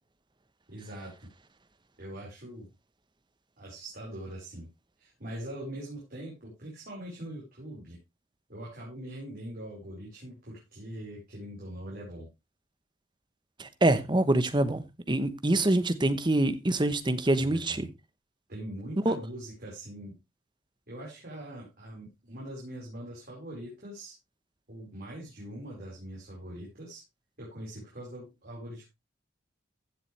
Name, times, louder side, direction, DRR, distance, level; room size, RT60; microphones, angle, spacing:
voice 1, 0.7-1.3 2.0-2.7 3.6-4.7 5.0-8.0 8.5-12.3 17.4-17.9 18.5-20.1 20.9-24.1 24.7-27.0 27.4-28.8, right 1 dB, 50° right, 4.8 m, -42 dB
voice 2, 13.6-17.9 19.0-19.1, right 1 dB, 25° right, 1.0 m, -25 dB
15.0 x 7.2 x 3.3 m
head